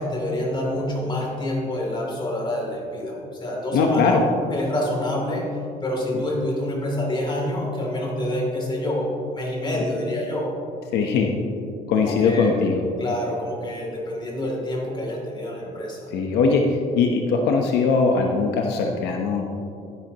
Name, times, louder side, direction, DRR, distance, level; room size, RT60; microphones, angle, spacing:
voice 1, 0.0-4.2 4.5-10.6 12.0-12.6 13.0-16.1, left 1 dB, 25° left, -1 dB, 2.8 m, -27 dB
voice 2, 3.7-4.2 10.9-11.3 11.9-12.9 16.1-19.5, left 4 dB, 80° left, 2 dB, 0.9 m, -20 dB
12.0 x 11.0 x 2.9 m, 2.5 s
cardioid pair, 110°, 17 cm